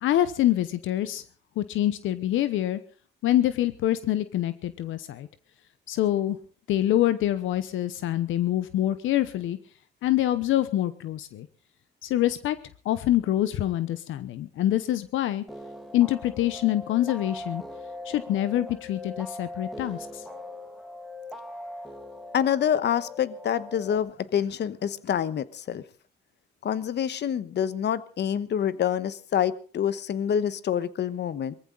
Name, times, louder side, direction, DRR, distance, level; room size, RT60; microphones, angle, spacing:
voice 1, 0.0-1.2 1.6-2.8 3.2-5.3 5.9-6.4 6.7-9.6 10.0-11.5 12.0-12.6 12.8-15.4 15.9-17.6 18.0-20.2, left 13 dB, 80° left, 13 dB, 0.9 m, -25 dB
sound 1, 15.5-24.0, left 1 dB, ahead, 2.2 m, -41 dB
voice 2, 22.3-25.8 26.6-31.5, left 9 dB, 60° left, 15 dB, 1.2 m, -27 dB
21.5 x 15.0 x 3.9 m, 0.41 s
cardioid pair, 90°, 20 cm